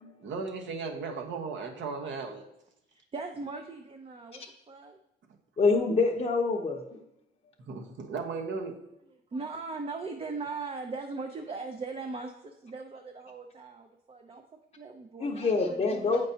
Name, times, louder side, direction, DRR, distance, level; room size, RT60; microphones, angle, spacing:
voice 1, 0.2-2.4 7.6-8.8, right 4 dB, 70° right, 2 dB, 1.1 m, -36 dB
voice 2, 3.1-5.0 9.3-14.4 14.8-16.3, right 3 dB, 30° right, 4 dB, 0.5 m, -39 dB
voice 3, 5.6-7.0 15.2-16.3, left 4 dB, 30° left, -1 dB, 0.7 m, -26 dB
8.2 x 5.2 x 2.8 m, 0.84 s
cardioid pair, 90°, 20 cm